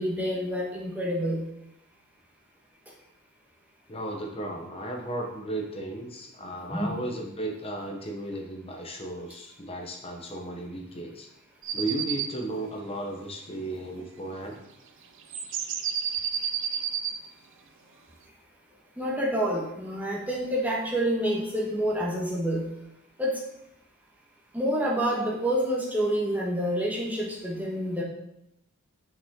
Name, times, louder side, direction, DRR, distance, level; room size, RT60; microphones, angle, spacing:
voice 1, 0.0-1.5 6.7-6.9 19.0-22.7 23.2-23.4 24.5-28.0, equal, 5° right, -3 dB, 1.5 m, -28 dB
voice 2, 3.9-11.3 11.7-14.6, right 1 dB, 25° left, 1 dB, 1.2 m, -35 dB
sound 1, 11.6-12.3 15.3-17.2, right 8 dB, 60° right, 0.6 m, -30 dB
7.1 x 6.0 x 3.8 m, 0.83 s
head